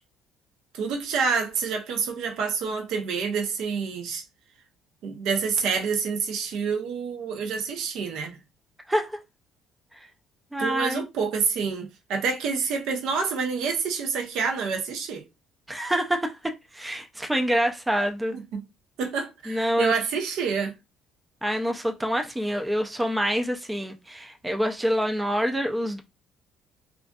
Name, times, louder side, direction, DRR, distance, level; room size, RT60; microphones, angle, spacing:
voice 1, 0.7-4.3 5.0-8.4 10.6-15.3 18.3-18.6 19.0-20.7, right 5 dB, 70° right, 0.6 m, -28 dB
voice 2, 10.5-11.0 15.7-18.4 19.5-19.9 21.4-26.0, equal, 10° right, 0.3 m, -26 dB
2.5 x 2.3 x 2.2 m
cardioid pair, 120°, 0 cm